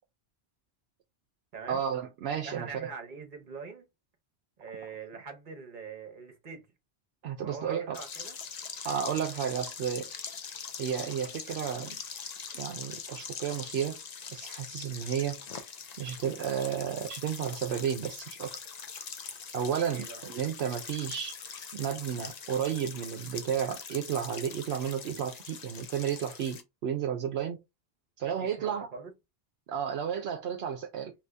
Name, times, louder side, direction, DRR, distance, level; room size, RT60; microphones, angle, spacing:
voice 1, 1.7-2.9 7.2-8.0 8.8-10.1 10.8-12.0 12.5-14.0 14.3-15.4 16.0-18.5 19.5-21.3 21.7-27.6 28.2-28.9 29.7-31.1, right 8 dB, 75° right, 0.8 m, -32 dB
voice 2, 2.4-3.9 4.6-6.7 7.4-8.4 14.9-15.1 19.9-20.2 28.2-29.1, right 5 dB, 50° right, 1.0 m, -43 dB
sound 1, 7.9-26.6, left 6 dB, 50° left, 0.6 m, -43 dB
2.7 x 2.7 x 3.3 m
omnidirectional pair, 1.1 m